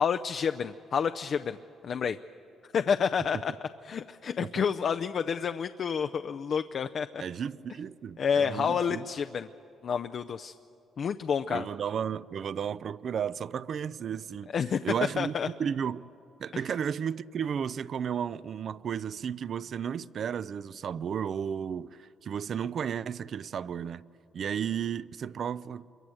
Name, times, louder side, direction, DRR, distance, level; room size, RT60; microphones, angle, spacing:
voice 1, 0.0-1.6 1.8-2.2 2.7-3.5 3.8-7.2 8.2-9.5 9.8-10.5 11.0-11.7 14.5-14.8 15.2-15.5 16.5-16.6, left 7 dB, 55° left, 0.5 m, -29 dB
voice 2, 7.2-9.1 11.5-14.5 14.8-16.1 16.4-24.0 24.3-25.8, right 8 dB, 55° right, 0.5 m, -33 dB
27.0 x 23.0 x 7.8 m
cardioid pair, 90°, 0 cm